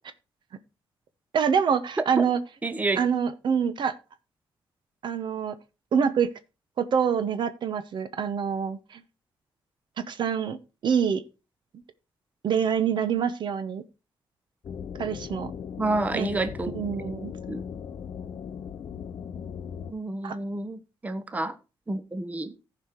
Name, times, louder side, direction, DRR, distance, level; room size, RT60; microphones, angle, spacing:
voice 1, 1.3-2.4 3.0-3.9 5.0-5.6 5.9-6.3 6.8-9.0 10.0-11.2 12.4-13.8 15.0-15.5 16.1-16.3 16.7-17.3 20.2-20.4, right 7 dB, 60° right, 0.9 m, -26 dB
voice 2, 2.6-3.0 15.8-16.8 17.5-17.6 19.9-21.5 21.9-22.5, right 2 dB, 15° right, 0.8 m, -29 dB
sound 1, 14.6-19.9, left 7 dB, 55° left, 0.7 m, -38 dB
15.0 x 5.0 x 4.5 m
cardioid pair, 120°, 9 cm